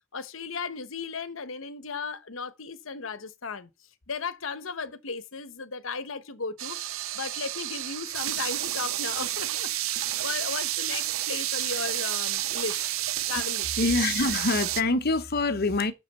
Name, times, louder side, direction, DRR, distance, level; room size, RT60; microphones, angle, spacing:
voice 1, 0.1-3.7 4.1-12.8 13.3-13.7, left 4 dB, 75° left, 1.0 m, -36 dB
sound 1, 6.6-14.8, right 14 dB, 90° right, 0.6 m, -30 dB
voice 2, 13.8-15.9, left 3 dB, 50° left, 1.0 m, -25 dB
8.4 x 6.2 x 5.7 m
head